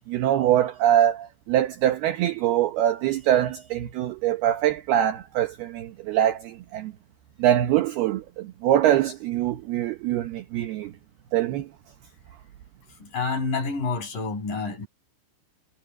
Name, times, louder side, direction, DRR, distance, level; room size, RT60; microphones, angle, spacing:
voice 1, 0.1-6.9 7.4-10.9 11.3-11.7, right 11 dB, 75° right, 2.4 m, -23 dB
voice 2, 13.0-14.9, left 4 dB, 40° left, 8.2 m, -28 dB
omnidirectional pair, 5.9 m